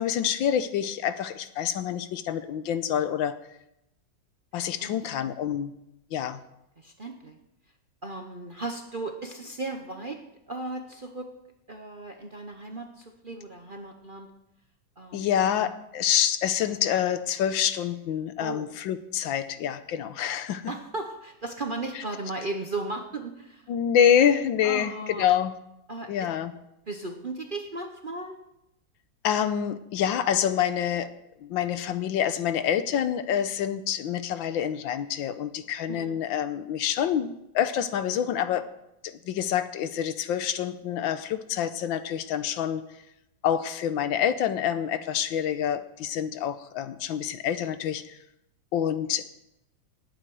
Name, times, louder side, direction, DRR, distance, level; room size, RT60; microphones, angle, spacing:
voice 1, 0.0-3.4 4.5-5.7 6.1-6.4 15.1-20.6 23.7-25.5 26.1-26.5 29.2-31.1 31.4-38.7 39.0-42.8 43.4-48.2 48.7-49.2, left 9 dB, 80° left, 12 dB, 1.5 m, -27 dB
voice 2, 4.8-5.1 6.8-7.4 8.0-10.2 10.5-11.3 11.7-14.3 15.0-15.7 18.4-18.7 20.7-23.7 24.6-25.3 25.9-26.3 26.9-28.4 35.9-36.2, right 2 dB, 40° right, 4 dB, 0.8 m, -36 dB
19.0 x 9.0 x 4.8 m, 0.85 s
omnidirectional pair, 2.1 m